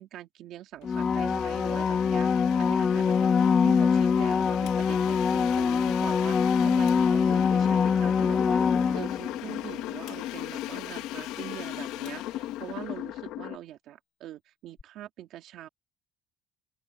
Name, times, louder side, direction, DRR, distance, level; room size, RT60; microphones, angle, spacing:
voice 1, 0.0-2.3 2.6-6.4 6.6-8.6 8.9-15.7, right 13 dB, 55° right, 2.8 m, -43 dB
Domestic sounds home sounds, 0.8-13.4, left 17 dB, 80° left, 2.3 m, -44 dB
sound 1, 0.8-9.5 14.8-14.9, left 6 dB, 25° left, 0.5 m, -24 dB
sound 2, 7.3-13.6, left 14 dB, 65° left, 2.4 m, -36 dB
open air
cardioid pair, 155°, 0 cm